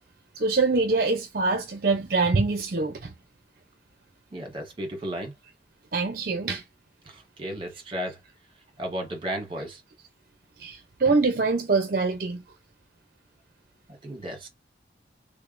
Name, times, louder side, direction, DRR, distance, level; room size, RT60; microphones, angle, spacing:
voice 1, 0.3-3.1 5.9-6.6 10.6-12.4, right 3 dB, 50° right, 0.6 m, -24 dB
voice 2, 4.3-5.3 7.0-8.2 8.8-9.8 14.0-14.5, equal, 30° right, 1.4 m, -34 dB
3.6 x 3.3 x 2.5 m
head